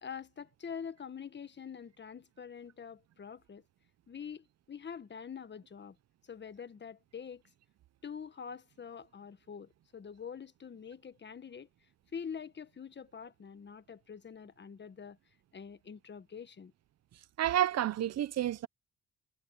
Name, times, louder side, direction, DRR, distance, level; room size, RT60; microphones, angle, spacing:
voice 1, 0.0-3.6 4.1-6.0 6.2-7.4 8.0-11.7 12.1-15.2 15.5-16.7, left 7 dB, 35° left, 1.4 m, -45 dB
voice 2, 17.4-18.7, right 12 dB, 60° right, 0.7 m, -30 dB
cardioid pair, 90°, 30 cm